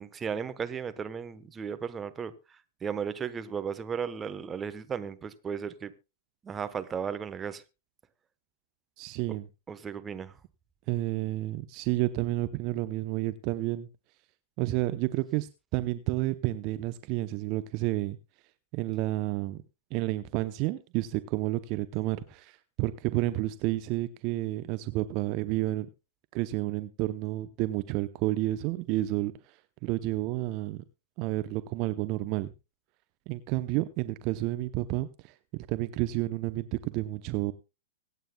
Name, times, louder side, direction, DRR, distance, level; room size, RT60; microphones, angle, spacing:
voice 1, 0.0-5.9 6.4-7.6 9.3-9.4 9.7-10.4, right 7 dB, 20° right, 1.1 m, -35 dB
voice 2, 9.0-9.5 10.9-13.9 14.6-18.2 18.7-19.6 19.9-25.9 26.3-29.6 29.8-30.8 31.2-32.5 33.3-37.5, right 17 dB, 40° right, 0.7 m, -30 dB
24.5 x 9.1 x 2.3 m
hypercardioid pair, 110°, 0 cm